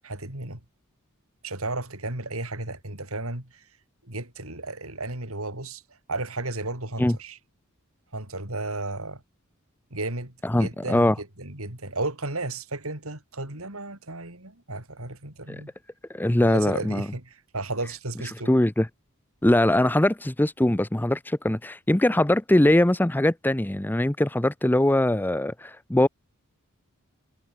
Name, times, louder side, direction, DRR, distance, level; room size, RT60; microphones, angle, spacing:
voice 1, 0.0-0.6 1.4-3.6 4.0-5.8 6.1-7.4 8.1-9.2 9.9-15.7 16.4-18.5, right 2 dB, 75° right, 5.2 m, -34 dB
voice 2, 10.4-11.1 15.5-15.6 16.1-17.1 18.5-18.9 19.4-26.1, left 1 dB, 10° left, 0.6 m, -22 dB
head